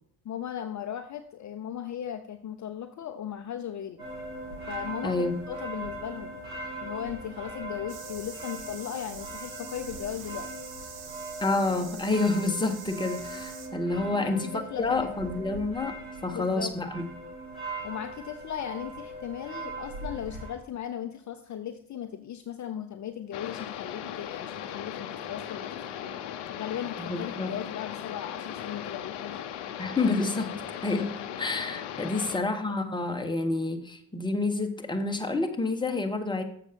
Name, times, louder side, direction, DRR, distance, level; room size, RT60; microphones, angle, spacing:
voice 1, 0.2-4.0 4.7-6.4 6.8-10.5 14.0-15.0 16.3-16.7 17.8-26.1 26.5-29.4 32.0-32.2, left 9 dB, 45° left, 7 dB, 0.7 m, -37 dB
sound 1, 4.0-20.5, right 2 dB, 85° right, 3.6 m, -40 dB
voice 2, 5.0-5.4 11.4-16.0 16.2-17.0 27.0-27.5 29.8-30.6 30.8-36.4, left 3 dB, 10° left, 4 dB, 1.3 m, -28 dB
sound 2, 7.9-13.7, right 6 dB, 60° right, 1.3 m, -45 dB
sound 3, 23.3-32.4, left 9 dB, 75° left, 0.8 m, -38 dB
7.2 x 5.8 x 5.2 m, 0.64 s
hypercardioid pair, 55°, 42 cm